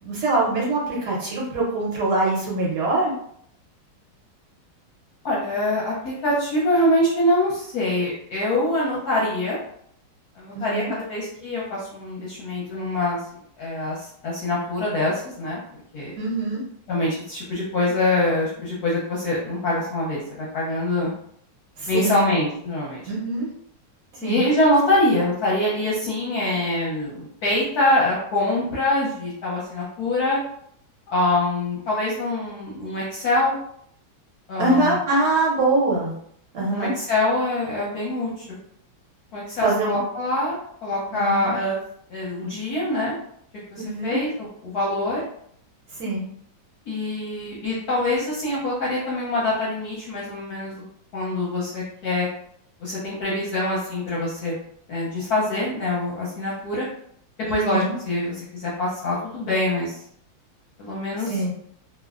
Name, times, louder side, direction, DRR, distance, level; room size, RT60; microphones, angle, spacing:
voice 1, 0.0-3.1 10.5-10.9 16.2-16.6 21.8-22.3 23.1-23.5 24.2-24.4 34.6-36.1 36.5-36.9 39.6-40.0 41.1-41.5 43.8-44.2 45.9-46.2 57.5-57.9 61.3-61.5, right 2 dB, 65° right, -4 dB, 1.1 m, -23 dB
voice 2, 5.2-9.6 10.4-13.2 13.6-15.6 15.9-16.1 16.9-21.1 21.9-23.1 24.2-30.4 31.1-33.6 34.5-35.0 36.7-38.4 39.3-41.8 42.1-43.1 43.7-45.2 46.9-50.8 51.1-52.3 52.8-54.5 54.9-56.9 57.5-60.0 60.8-61.4, left 1 dB, 65° left, -5 dB, 0.9 m, -24 dB
3.3 x 2.0 x 2.3 m, 0.67 s
omnidirectional pair, 2.2 m